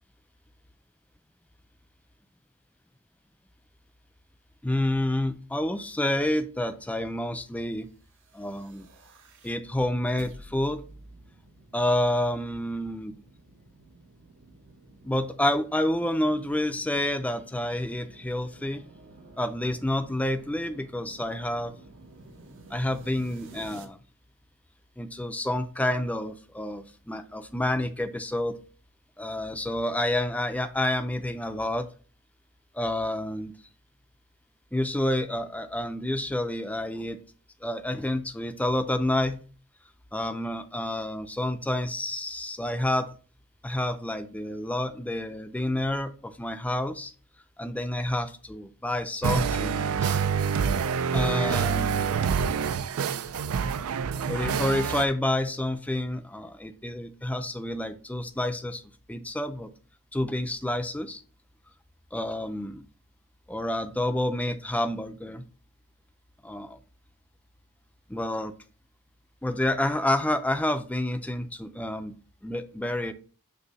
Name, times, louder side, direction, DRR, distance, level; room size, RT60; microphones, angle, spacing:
voice 1, 4.6-7.9 8.3-8.9 9.4-10.8 11.7-13.2 15.0-18.9 19.4-21.7 22.7-24.0 25.0-28.6 29.2-31.9 32.7-33.5 34.7-37.2 37.6-39.4 40.1-43.1 43.6-47.1 47.6-50.2 51.1-52.2 54.3-58.8 59.1-59.7 60.1-61.2 62.1-62.8 63.5-65.4 66.4-66.8 68.1-68.5 69.4-72.1 72.4-73.1, left 1 dB, 5° left, 9 dB, 0.4 m, -29 dB
sound 1, 8.1-23.9, right 2 dB, 60° right, 0.9 m, -51 dB
Jammin with Snapper, 49.2-55.1, right 6 dB, 80° right, 0.4 m, -26 dB
6.7 x 2.7 x 5.5 m, 0.39 s
head